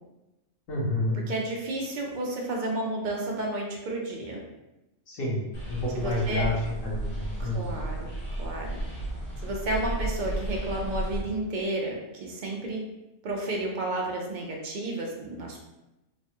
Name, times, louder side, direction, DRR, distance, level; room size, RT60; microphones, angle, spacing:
voice 1, 0.7-1.2 5.1-5.4 5.7-7.7, left 1 dB, 70° left, -5 dB, 1.3 m, -29 dB
voice 2, 1.3-4.4 5.9-6.5 7.4-8.1 8.4-8.7 9.4-12.8 13.2-15.6, right 2 dB, 65° right, -1 dB, 0.4 m, -31 dB
sound 1, 5.5-11.2, right 1 dB, 55° left, 1.0 m, -33 dB
3.2 x 2.2 x 2.8 m, 0.94 s
omnidirectional pair, 1.4 m